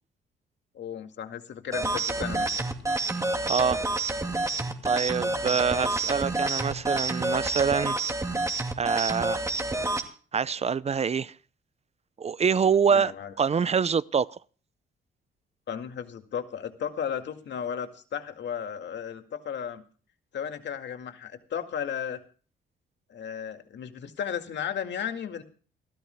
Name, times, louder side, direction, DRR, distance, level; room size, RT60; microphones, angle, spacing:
voice 1, 0.7-2.5 5.3-5.6 12.9-13.3 15.7-19.8 20.3-22.2 23.1-25.4, left 8 dB, 65° left, 2.1 m, -34 dB
sound 1, 1.7-10.1, right 2 dB, 15° right, 2.5 m, -28 dB
voice 2, 3.5-3.8 4.9-8.0 8.8-9.4 10.3-11.3 12.2-13.1 13.4-14.3, right 6 dB, 30° right, 0.6 m, -25 dB
28.5 x 13.5 x 2.2 m
cardioid pair, 90°, 20 cm